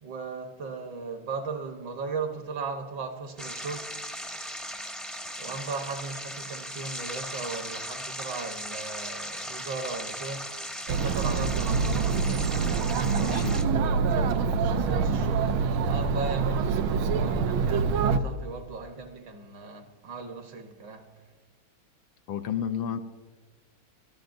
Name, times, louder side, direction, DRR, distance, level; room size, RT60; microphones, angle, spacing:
voice 1, 0.0-4.0 5.4-10.5 11.0-11.8 13.7-15.5 15.8-21.1, right 4 dB, 60° right, 1.7 m, -37 dB
sound 1, 3.4-13.6, equal, ahead, 0.7 m, -38 dB
Chatter, 10.9-18.2, right 5 dB, 80° right, 1.5 m, -25 dB
voice 2, 13.1-13.6 22.3-23.0, left 8 dB, 75° left, 1.3 m, -31 dB
23.5 x 13.5 x 2.6 m
omnidirectional pair, 2.3 m